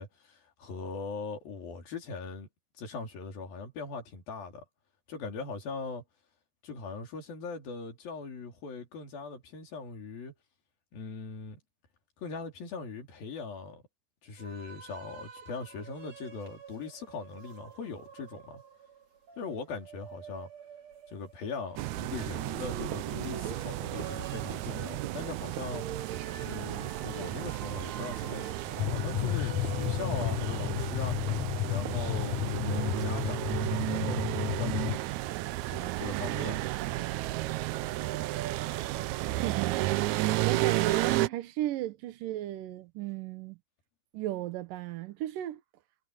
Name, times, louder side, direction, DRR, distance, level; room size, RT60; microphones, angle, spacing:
voice 1, 0.0-2.5 2.8-4.6 5.1-6.0 6.6-10.3 10.9-11.6 12.2-13.8 14.2-18.6 19.4-20.5 21.1-25.9 26.4-31.2 31.6-35.2 35.7-36.7, left 4 dB, 75° left, 5.5 m, -40 dB
sound 1, 14.4-30.3, right 6 dB, 50° right, 4.3 m, -47 dB
sound 2, 21.8-41.3, right 17 dB, 90° right, 1.6 m, -33 dB
sound 3, 28.8-35.0, left 15 dB, 60° left, 2.3 m, -32 dB
voice 2, 39.3-40.1 40.4-43.6 44.1-45.6, right 14 dB, 70° right, 2.7 m, -35 dB
omnidirectional pair, 4.1 m